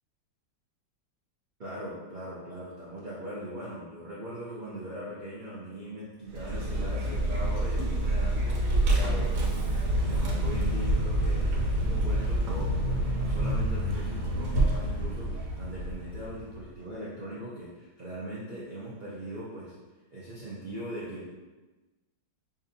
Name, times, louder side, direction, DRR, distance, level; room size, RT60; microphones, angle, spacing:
voice 1, 1.6-8.6 8.9-9.5 10.0-19.7 20.1-21.3, right 1 dB, 65° right, -8 dB, 0.4 m, -40 dB
Vehicle, 6.3-16.6, right 1 dB, 80° right, 1.4 m, -27 dB
5.2 x 2.6 x 2.6 m, 1.2 s
omnidirectional pair, 1.9 m